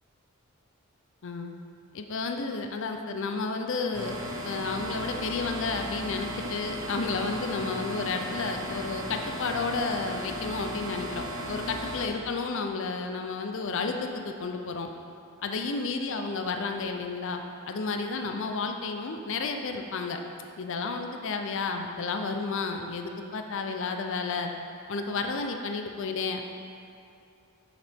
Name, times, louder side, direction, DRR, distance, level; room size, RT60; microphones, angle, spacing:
voice 1, 1.2-1.5 1.9-14.9 15.4-17.4 17.7-20.2 20.6-24.5 24.9-26.4, left 4 dB, 60° left, 5 dB, 0.5 m, -32 dB
sound 1, 3.9-12.1, equal, 75° right, 1.0 m, -36 dB
7.2 x 6.5 x 3.5 m, 2.6 s
head